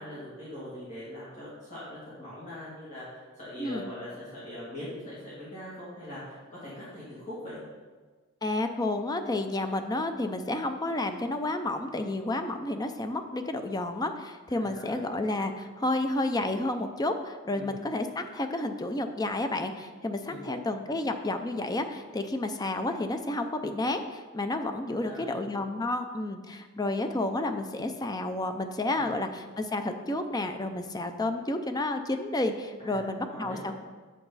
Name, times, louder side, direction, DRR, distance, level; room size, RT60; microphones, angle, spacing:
voice 1, 0.0-7.6 14.5-15.0 17.5-17.8 20.3-20.5 25.0-25.4 28.9-29.1 32.8-33.7, left 1 dB, 35° left, -9 dB, 2.3 m, -42 dB
voice 2, 3.6-3.9 8.4-33.7, left 2 dB, 20° left, 7 dB, 0.5 m, -31 dB
7.2 x 6.9 x 4.0 m, 1.4 s
head